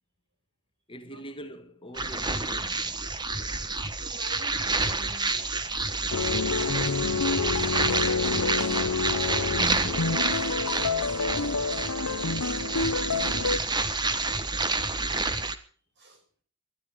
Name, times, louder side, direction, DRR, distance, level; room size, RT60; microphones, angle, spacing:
voice 1, 0.9-3.1 8.2-10.3, left 1 dB, 25° left, 1.8 m, -42 dB
sound 1, 1.9-15.6, right 3 dB, 20° right, 1.3 m, -29 dB
voice 2, 4.0-5.6 14.9-15.3 16.0-16.2, right 2 dB, 50° right, 5.8 m, -49 dB
sound 2, 6.1-13.6, left 4 dB, 80° left, 0.8 m, -28 dB
20.0 x 12.5 x 5.2 m
head